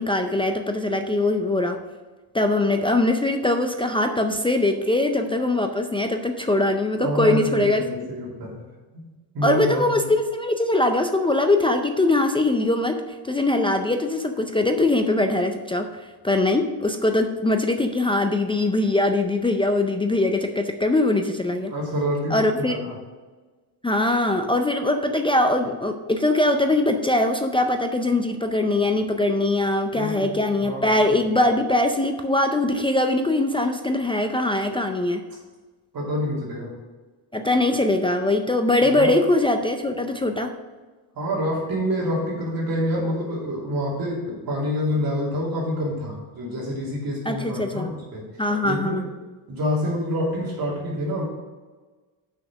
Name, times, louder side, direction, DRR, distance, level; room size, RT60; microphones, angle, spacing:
voice 1, 0.0-1.8 2.3-7.8 9.4-21.7 22.3-22.8 23.8-35.2 37.3-40.5 47.3-47.9 48.4-49.0, left 2 dB, 10° left, 5 dB, 0.4 m, -22 dB
voice 2, 7.0-8.6 8.9-9.1 9.3-10.1 21.7-23.0 29.9-30.9 31.1-31.2 35.9-36.7 38.8-39.1 41.1-48.2 48.6-49.1 49.5-51.2, equal, 50° right, -4 dB, 2.7 m, -27 dB
6.4 x 5.8 x 6.0 m, 1.3 s
cardioid pair, 140°, 47 cm